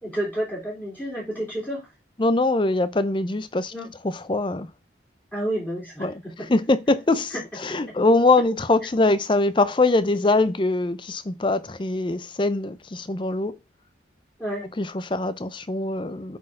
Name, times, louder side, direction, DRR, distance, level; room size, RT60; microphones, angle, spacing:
voice 1, 0.0-1.9 3.7-3.9 5.3-6.5 7.3-7.4 7.7-8.0 14.4-14.7, right 1 dB, 10° left, 3.0 m, -30 dB
voice 2, 2.2-3.7 4.0-4.7 6.0-13.6 14.8-16.4, left 2 dB, 25° left, 0.5 m, -23 dB
8.2 x 4.2 x 3.7 m
head